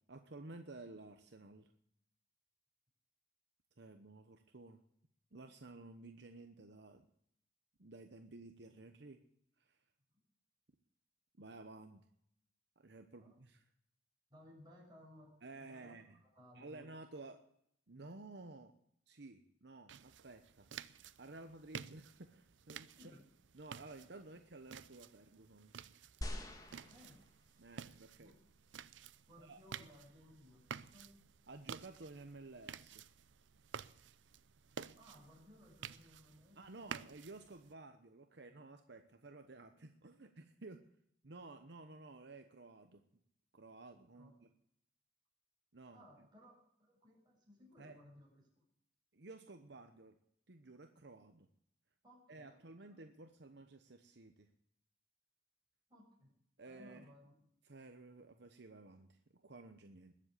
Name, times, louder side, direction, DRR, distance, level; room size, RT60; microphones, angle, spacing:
voice 1, 0.1-1.7 3.8-4.8 5.3-7.1 7.8-9.2 9.6-9.8 11.4-12.0 12.8-13.6 15.4-16.2 16.5-17.4 17.9-18.7 19.1-20.7 21.2-23.2 23.5-25.7 27.6-28.3 29.4-29.6 31.5-33.0 36.6-40.8 41.2-43.0 43.5-44.5 45.7-46.1 47.8-48.0 49.1-50.2 50.5-51.5 52.3-54.5 56.6-57.1 57.6-60.1, right 2 dB, 65° right, 6 dB, 1.0 m, -54 dB
voice 2, 14.3-15.9 16.2-16.9 23.0-23.2 26.7-27.2 28.2-28.4 29.3-31.1 35.0-36.8 44.1-44.3 45.9-48.6 52.0-52.6 52.9-53.0 55.9-56.3 56.6-57.4, left 1 dB, 25° right, -2 dB, 7.0 m, -61 dB
sound 1, 19.9-37.7, right 7 dB, 85° right, 0.6 m, -52 dB
sound 2, 26.2-27.7 28.5-28.6, equal, 20° left, 1.9 m, -45 dB
21.0 x 7.6 x 8.3 m, 0.71 s
head